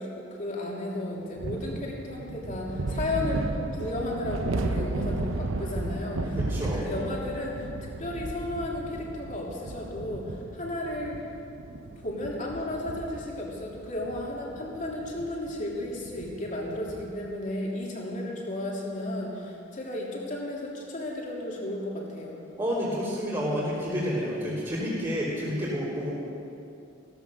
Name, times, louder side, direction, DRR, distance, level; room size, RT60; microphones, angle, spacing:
voice 1, 0.0-3.5 3.8-7.7 8.0-11.2 12.0-22.4, left 1 dB, 40° left, -3 dB, 3.1 m, -34 dB
sound 1, 1.4-17.2, right 2 dB, 80° right, 0.8 m, -35 dB
voice 2, 6.3-6.9 22.6-26.1, equal, 25° right, -10 dB, 3.4 m, -29 dB
15.5 x 14.5 x 6.4 m, 2.7 s
head